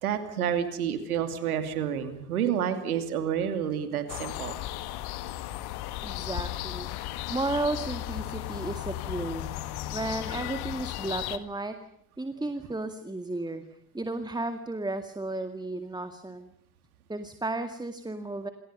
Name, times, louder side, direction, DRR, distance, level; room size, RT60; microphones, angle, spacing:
voice 1, 0.0-4.6, right 9 dB, 75° right, 9 dB, 2.8 m, -29 dB
sound 1, 4.1-11.4, left 15 dB, 60° left, 1.9 m, -35 dB
voice 2, 6.0-9.6 9.9-11.8 12.2-13.6 13.9-16.5 17.1-18.5, right 2 dB, 10° right, 8 dB, 2.1 m, -33 dB
28.0 x 28.0 x 5.5 m, 0.74 s
figure-of-eight pair, 50°, 44 cm